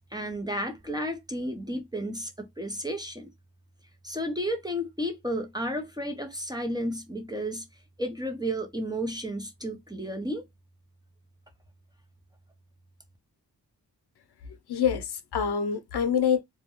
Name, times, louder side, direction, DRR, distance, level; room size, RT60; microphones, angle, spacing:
voice 1, 0.1-3.3 4.0-7.6 8.0-10.5, equal, 10° right, 0.5 m, -32 dB
voice 2, 14.7-16.4, left 7 dB, 80° left, 0.5 m, -26 dB
2.2 x 2.1 x 2.9 m
wide cardioid pair, 100°, 39 cm